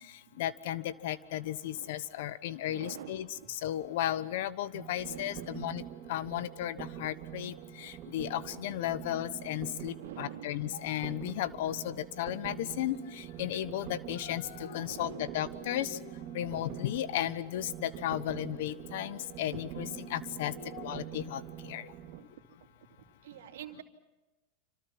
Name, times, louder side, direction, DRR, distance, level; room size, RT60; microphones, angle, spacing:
voice 1, 0.4-3.3 3.6-5.8 6.1-7.5 7.8-13.0 13.4-16.0 16.3-21.4 21.7-21.8, left 12 dB, 70° left, 15 dB, 1.2 m, -34 dB
voice 2, 2.7-3.5 5.0-5.6 7.8-7.9 9.7-10.5 14.7-15.3 16.4-16.6 18.3-18.4 20.6-21.1 22.0-22.2 23.2-23.8, right 10 dB, 80° right, 6 dB, 2.6 m, -47 dB
sound 1, 4.7-22.2, right 11 dB, 45° right, 2.9 m, -45 dB
27.5 x 26.0 x 6.1 m, 1.1 s
hypercardioid pair, 105°, 0 cm